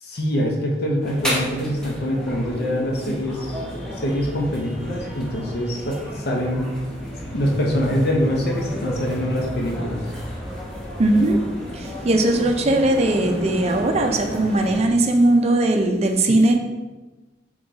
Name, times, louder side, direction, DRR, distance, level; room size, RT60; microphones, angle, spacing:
voice 1, 0.0-6.6 7.3-10.0, equal, 60° left, 0 dB, 0.7 m, -24 dB
sound 1, 1.0-14.9, equal, 5° left, 0.8 m, -32 dB
voice 2, 11.0-11.4 11.7-16.6, right 1 dB, 35° right, 4 dB, 0.4 m, -19 dB
3.8 x 3.0 x 3.9 m, 1.2 s
head